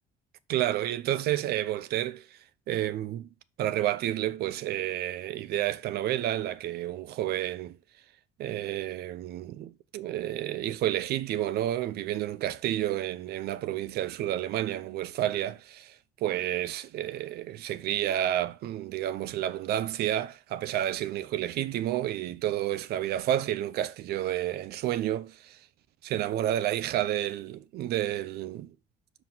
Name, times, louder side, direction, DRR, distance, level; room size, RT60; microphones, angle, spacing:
voice 1, 0.5-2.4 2.7-3.3 3.6-7.8 8.4-16.0 16.2-25.6 26.0-28.7, right 12 dB, 70° right, 0.6 m, -30 dB
6.1 x 6.0 x 3.8 m
cardioid pair, 110°, 17 cm